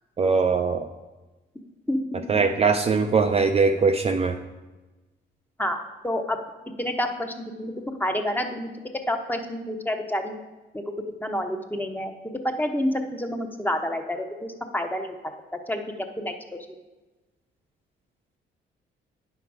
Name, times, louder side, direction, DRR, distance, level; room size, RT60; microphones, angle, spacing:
voice 1, 0.2-0.9 2.3-4.4, right 4 dB, 30° right, 5 dB, 0.5 m, -21 dB
voice 2, 1.9-2.2 5.6-6.4 6.8-8.7 9.1-10.3 10.7-10.8 11.2-12.1 12.4-15.1 15.7-15.8 16.2-16.3, left 1 dB, 10° left, 4 dB, 0.9 m, -28 dB
9.2 x 5.9 x 4.7 m, 1.2 s
cardioid pair, 90°, 20 cm